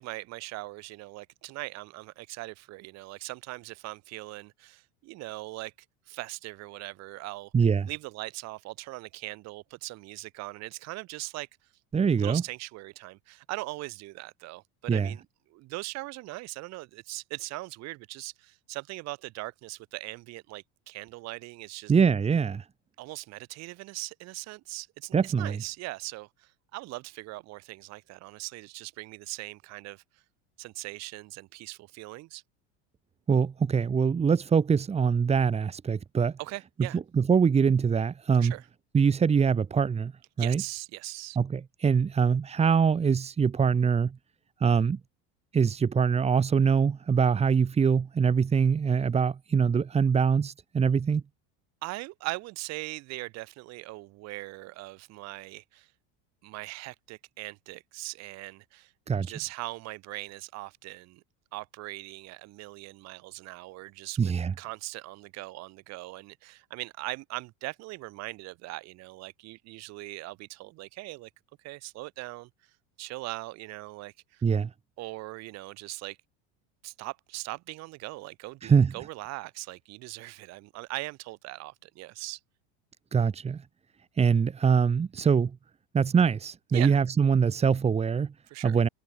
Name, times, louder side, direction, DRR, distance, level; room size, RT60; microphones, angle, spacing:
voice 1, 0.0-5.7 6.1-7.5 7.9-11.5 12.2-15.2 15.5-21.9 23.0-30.0 30.6-32.4 36.4-37.0 38.4-38.7 40.4-41.4 51.8-55.9 56.4-58.9 59.2-61.2 61.5-64.3 64.6-71.3 71.6-72.5 73.0-74.4 75.0-76.2 76.8-82.4 86.7-87.0 88.5-88.8, right 20 dB, 50° right, 7.7 m, -40 dB
voice 2, 7.5-7.9 11.9-12.4 14.9-15.1 21.9-22.6 25.1-25.6 33.3-36.4 36.9-38.5 38.9-40.1 40.4-40.6 41.4-44.2 44.6-45.0 45.5-51.2 59.1-59.3 64.2-64.5 74.4-74.7 78.6-78.9 83.1-83.6 84.2-85.6 85.9-88.3 88.6-88.9, right 6 dB, 20° right, 4.0 m, -23 dB
cardioid pair, 150°, 33 cm